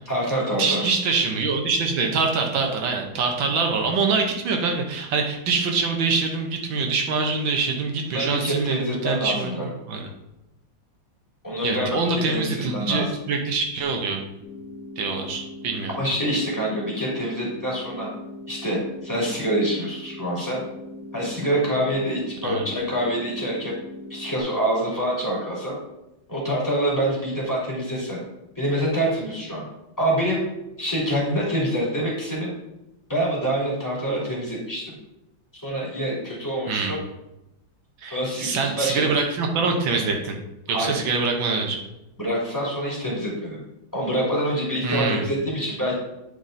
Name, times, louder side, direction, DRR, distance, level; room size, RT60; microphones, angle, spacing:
voice 1, 0.1-0.8 8.1-9.7 11.4-12.0 12.3-12.4 12.7-13.1 16.0-18.1 18.5-20.6 21.1-23.7 24.1-25.7 26.3-28.2 28.6-29.6 30.0-30.4 30.8-32.5 33.1-35.0 35.6-37.0 38.1-39.1 40.7-40.9 42.2-43.6 43.9-46.0, right 1 dB, 10° left, -7 dB, 2.4 m, -26 dB
voice 2, 0.6-9.5 9.9-10.1 11.6-14.2 15.0-16.0 22.4-22.6 36.7-36.9 38.0-40.4 40.7-41.8 44.8-45.3, right 4 dB, 80° right, 2 dB, 1.7 m, -24 dB
sound 1, 14.4-24.4, left 1 dB, 50° right, 1.8 m, -40 dB
9.5 x 4.1 x 3.8 m, 0.90 s
omnidirectional pair, 2.1 m